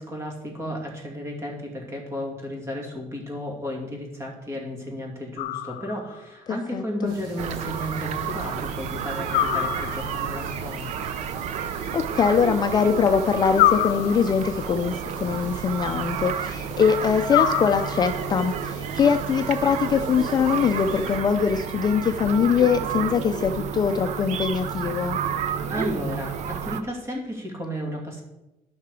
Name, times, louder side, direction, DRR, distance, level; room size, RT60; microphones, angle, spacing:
voice 1, 0.0-10.9 25.7-28.2, equal, 20° right, 0 dB, 2.6 m, -33 dB
sound 1, 5.4-6.2 9.3-10.3 13.5-14.6 17.3-18.3, left 14 dB, 85° left, 0.6 m, -25 dB
voice 2, 6.5-7.2 11.9-25.2, left 6 dB, 30° left, 6 dB, 0.5 m, -22 dB
sound 2, 7.0-21.2, right 1 dB, 85° right, 3.5 m, -43 dB
sound 3, 7.4-26.8, right 8 dB, 60° right, 0.7 m, -31 dB
12.0 x 6.0 x 4.8 m, 0.97 s
cardioid pair, 145°, 13 cm